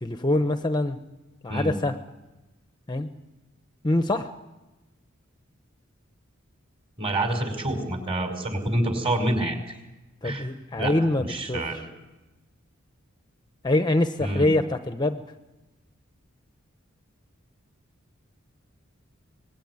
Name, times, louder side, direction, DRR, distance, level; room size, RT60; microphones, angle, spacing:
voice 1, 0.0-1.0 1.4-1.9 2.9-3.1 3.8-4.3 10.2-11.8 13.6-15.2, left 2 dB, 20° left, 8 dB, 0.9 m, -24 dB
voice 2, 7.0-9.6 10.2-10.5 10.8-10.9 11.2-11.8 14.2-14.5, right 1 dB, 25° right, 5 dB, 5.1 m, -27 dB
25.0 x 20.5 x 9.5 m, 1.1 s
head